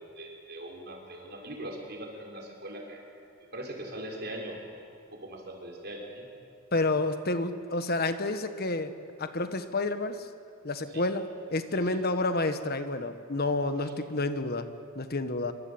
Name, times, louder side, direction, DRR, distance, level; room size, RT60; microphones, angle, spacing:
voice 1, 0.2-3.0 3.5-6.3 10.9-11.0 11.7-12.0 13.8-13.9, right 1 dB, 50° right, 0 dB, 5.8 m, -41 dB
voice 2, 6.7-8.9 9.2-10.2 10.6-14.7 14.9-15.5, left 2 dB, 50° left, 9 dB, 1.5 m, -29 dB
26.0 x 24.5 x 8.9 m, 2.4 s
head